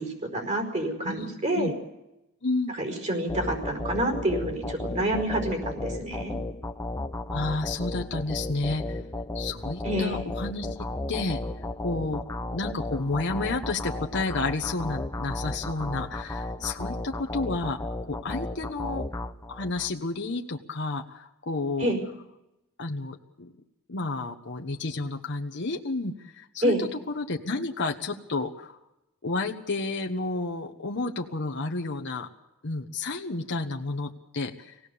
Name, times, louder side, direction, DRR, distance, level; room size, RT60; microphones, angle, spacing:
voice 1, 0.0-1.7 2.7-6.4 9.8-10.2 21.8-22.0 26.6-26.9, right 1 dB, 35° right, 4 dB, 4.9 m, -28 dB
voice 2, 1.0-1.7 2.4-2.8 7.3-9.0 9.3-11.4 11.8-19.1 19.5-21.9 22.8-23.5 23.9-26.9 27.1-28.8 29.2-32.3 32.6-34.8, left 3 dB, 55° left, 2 dB, 1.3 m, -31 dB
sound 1, 3.3-19.9, left 1 dB, 15° left, 0.8 m, -34 dB
26.0 x 17.5 x 7.0 m, 0.92 s
head